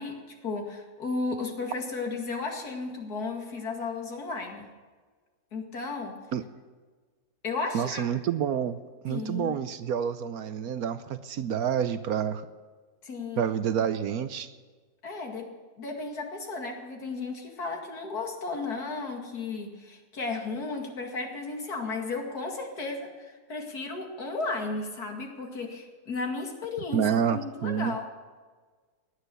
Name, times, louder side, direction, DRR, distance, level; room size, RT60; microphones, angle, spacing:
voice 1, 0.0-4.7 5.5-6.2 7.4-8.0 9.1-9.5 13.0-13.4 15.0-15.5 15.8-27.0 27.3-28.1, left 3 dB, 65° left, 2 dB, 2.7 m, -34 dB
voice 2, 7.7-12.5 13.4-14.5 26.9-27.9, right 8 dB, 70° right, 12 dB, 1.1 m, -28 dB
18.0 x 11.5 x 6.9 m, 1.4 s
omnidirectional pair, 1.8 m